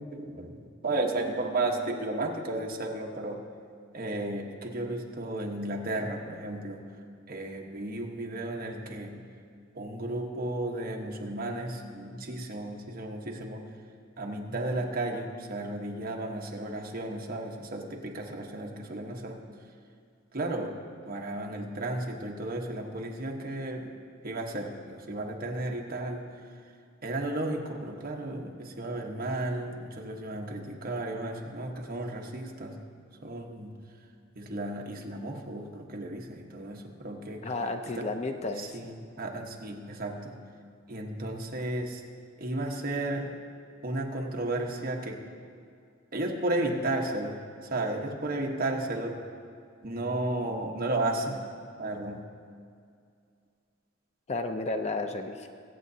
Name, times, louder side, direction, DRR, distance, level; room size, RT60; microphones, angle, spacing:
voice 1, 0.0-3.4 3.9-6.8 7.3-9.2 9.7-13.6 14.2-19.4 20.3-20.8 21.1-23.9 24.2-26.3 27.0-32.8 33.2-33.8 34.3-37.5 38.0-38.1 38.6-40.4 40.9-42.0 42.4-43.4 43.8-45.2 46.1-49.2 49.8-51.5 51.8-52.2, right 2 dB, 45° right, 1 dB, 1.1 m, -33 dB
voice 2, 37.4-38.9 54.3-55.5, left 3 dB, 35° left, 6 dB, 0.5 m, -32 dB
21.5 x 8.4 x 2.7 m, 2.3 s
head